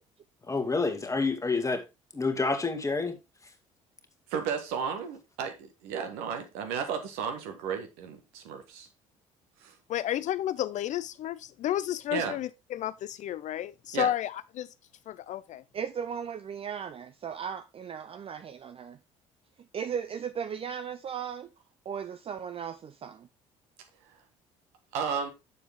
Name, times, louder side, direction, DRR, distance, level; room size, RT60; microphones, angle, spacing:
voice 1, 0.5-1.8 2.1-3.2, left 3 dB, 20° left, 1.9 m, -28 dB
voice 2, 4.3-5.5 5.8-8.9 9.6-9.7 12.1-12.4 13.9-14.1 24.9-25.3, right 6 dB, 65° right, 1.5 m, -33 dB
voice 3, 9.9-14.7 15.1-15.6, left 11 dB, 45° left, 0.4 m, -32 dB
voice 4, 15.7-19.0 19.7-21.5 21.9-23.3, right 7 dB, 35° right, 0.5 m, -36 dB
7.2 x 7.0 x 3.6 m
figure-of-eight pair, 50°, 17 cm